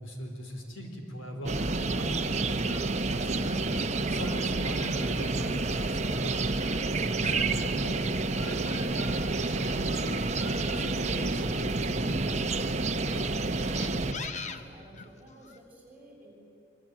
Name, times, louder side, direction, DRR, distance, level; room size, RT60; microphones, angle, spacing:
voice 1, 0.0-2.7 3.0-3.6 3.9-6.6 6.9-8.1 8.4-10.3 10.7-12.5 12.9-14.2, equal, 80° left, 3 dB, 4.4 m, -39 dB
sound 1, 1.5-14.1, right 3 dB, 35° right, 0.9 m, -29 dB
sound 2, 2.7-9.5 9.9-12.3 13.0-15.6, left 4 dB, 35° left, 1.1 m, -44 dB
voice 2, 14.2-16.3, right 1 dB, 10° right, -2 dB, 7.4 m, -53 dB
26.5 x 24.0 x 9.5 m, 2.8 s
head